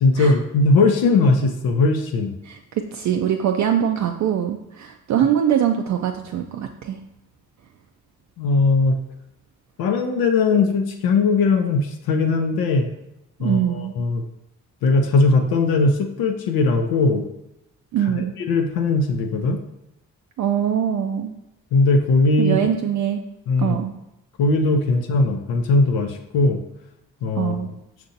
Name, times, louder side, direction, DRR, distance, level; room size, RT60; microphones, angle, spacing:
voice 1, 0.0-2.4 8.4-9.0 9.8-12.9 13.4-14.2 14.8-17.2 18.1-19.6 21.7-22.6 23.5-23.8 24.4-26.6 27.2-27.6, left 3 dB, 70° left, 4 dB, 0.6 m, -19 dB
voice 2, 2.4-7.0 13.4-13.9 17.9-18.3 20.4-21.3 22.4-23.2 23.6-23.9 27.4-27.7, right 9 dB, 50° right, 4 dB, 0.4 m, -22 dB
5.7 x 2.6 x 2.6 m, 0.86 s
hypercardioid pair, 40°, 38 cm